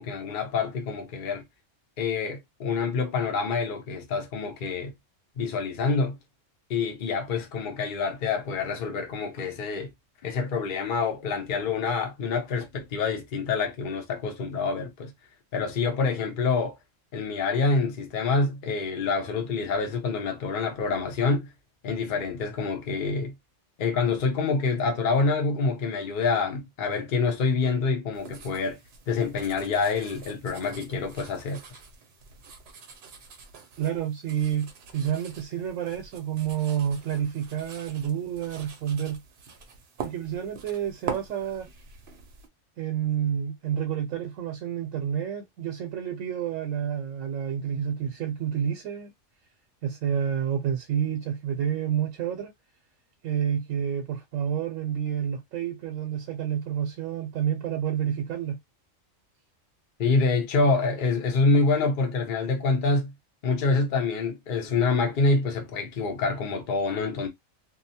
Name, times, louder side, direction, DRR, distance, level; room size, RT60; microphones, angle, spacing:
voice 1, 0.0-1.4 2.0-4.9 5.4-6.2 6.7-9.9 10.2-15.1 15.5-16.8 17.1-21.5 21.8-23.3 23.8-28.8 29.1-31.6 60.0-63.1 63.4-67.3, left 4 dB, 50° left, 0.8 m, -26 dB
sound 1, 28.1-42.5, right 6 dB, 60° right, 0.8 m, -44 dB
voice 2, 33.8-39.2 40.0-41.7 42.8-49.1 49.8-52.5 53.2-58.6, right 9 dB, 85° right, 1.0 m, -29 dB
2.7 x 2.1 x 2.7 m
omnidirectional pair, 1.3 m